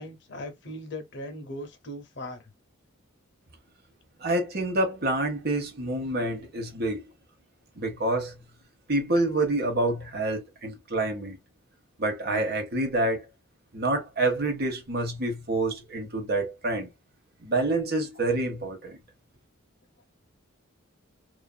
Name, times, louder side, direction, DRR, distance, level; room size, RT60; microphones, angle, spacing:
voice 1, 0.0-2.5, left 1 dB, 60° left, 0.8 m, -39 dB
voice 2, 4.2-7.1 7.8-8.3 8.9-11.4 12.0-13.3 13.7-16.9 17.4-19.0, right 2 dB, 50° right, 0.9 m, -27 dB
2.5 x 2.5 x 2.2 m
head